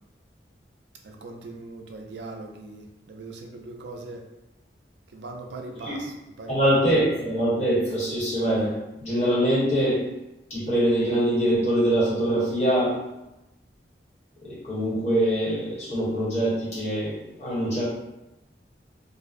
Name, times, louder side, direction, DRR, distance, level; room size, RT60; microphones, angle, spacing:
voice 1, 1.0-4.2 5.1-6.8, right 2 dB, 80° right, 2 dB, 0.4 m, -40 dB
voice 2, 6.5-8.7 9.0-10.0 10.5-13.0 14.4-17.8, right 1 dB, 40° left, -9 dB, 1.0 m, -23 dB
2.5 x 2.0 x 2.4 m, 0.95 s
head